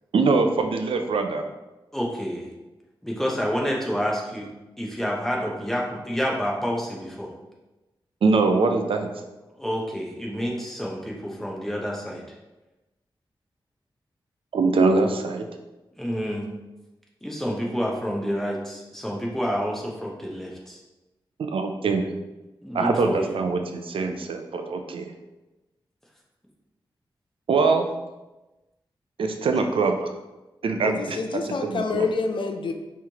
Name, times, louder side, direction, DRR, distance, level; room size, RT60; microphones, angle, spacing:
voice 1, 0.1-1.4 8.2-9.1 14.5-15.4 21.4-22.0 22.7-25.1 27.5-27.9 29.2-30.1 30.6-31.2 31.4-32.1, right 4 dB, 80° right, 5 dB, 0.5 m, -23 dB
voice 2, 1.9-2.5 3.0-4.5 4.8-7.3 9.6-12.2 16.0-16.5 17.2-20.8 22.6-23.3, equal, 5° left, -2 dB, 0.8 m, -28 dB
voice 3, 30.8-32.7, left 4 dB, 65° left, 5 dB, 0.4 m, -27 dB
5.6 x 3.1 x 2.9 m, 1.1 s
wide cardioid pair, 150°, 9 cm